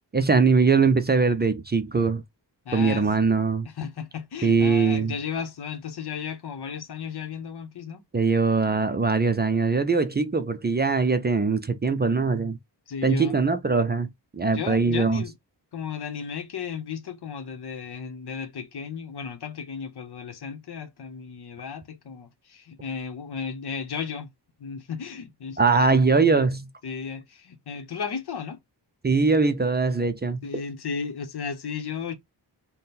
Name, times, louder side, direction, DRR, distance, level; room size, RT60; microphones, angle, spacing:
voice 1, 0.1-2.2 2.7-3.7 4.4-5.1 8.1-12.6 13.0-15.2 25.6-26.7 29.0-30.4, right 4 dB, 25° right, 0.4 m, -22 dB
voice 2, 2.7-3.1 3.6-8.0 12.9-13.4 14.5-15.3 15.7-24.3 24.6-25.9 26.8-28.6 30.4-32.2, left 6 dB, 65° left, 0.9 m, -34 dB
3.5 x 2.2 x 4.1 m
wide cardioid pair, 105°, 42 cm